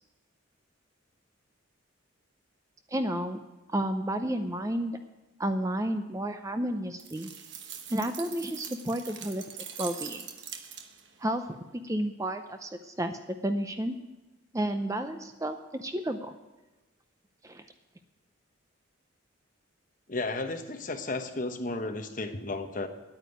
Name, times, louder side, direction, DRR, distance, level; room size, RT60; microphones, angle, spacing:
voice 1, 2.9-3.4 3.7-5.0 5.4-7.3 7.9-9.4 9.8-10.3 11.2-14.0 14.5-16.3 17.4-17.6, right 1 dB, 15° right, 8 dB, 0.5 m, -31 dB
sound 1, 7.0-11.2, right 8 dB, 60° right, 1.1 m, -43 dB
voice 2, 20.1-22.9, left 2 dB, 40° left, 6 dB, 1.1 m, -33 dB
9.7 x 9.2 x 9.3 m, 1.1 s
head